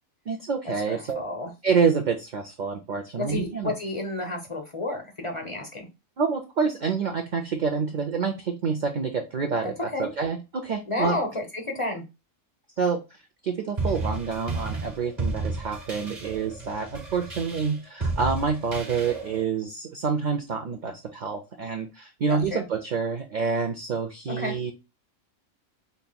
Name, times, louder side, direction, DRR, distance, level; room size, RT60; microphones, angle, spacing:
voice 1, 0.3-1.2 1.6-3.7 6.2-11.2 12.8-24.7, right 5 dB, 60° right, 5 dB, 0.4 m, -27 dB
voice 2, 0.9-1.5 3.2-5.9 9.9-10.1 10.9-12.0 22.3-22.6 24.4-24.5, left 2 dB, 30° left, 3 dB, 0.7 m, -31 dB
sound 1, 13.8-19.4, right 3 dB, 35° right, 1.3 m, -32 dB
5.1 x 2.8 x 2.2 m, 0.27 s
omnidirectional pair, 1.4 m